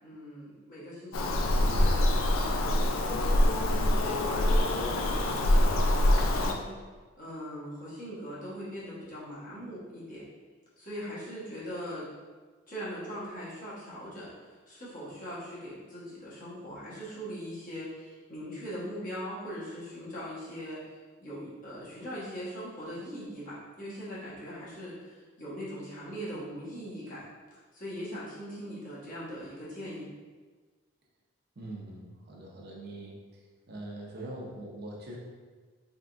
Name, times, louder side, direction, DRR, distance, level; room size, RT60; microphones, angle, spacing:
voice 1, 0.0-6.7 7.1-10.2 10.8-12.1 12.7-20.8 21.2-27.3 27.5-30.1, equal, 45° left, -9 dB, 1.3 m, -41 dB
Bird vocalization bird call bird song, 1.1-6.5, left 1 dB, 85° left, 0.4 m, -25 dB
voice 2, 31.6-33.2 33.7-35.2, right 1 dB, 55° right, -2 dB, 0.7 m, -42 dB
3.7 x 3.5 x 2.5 m, 1.4 s
head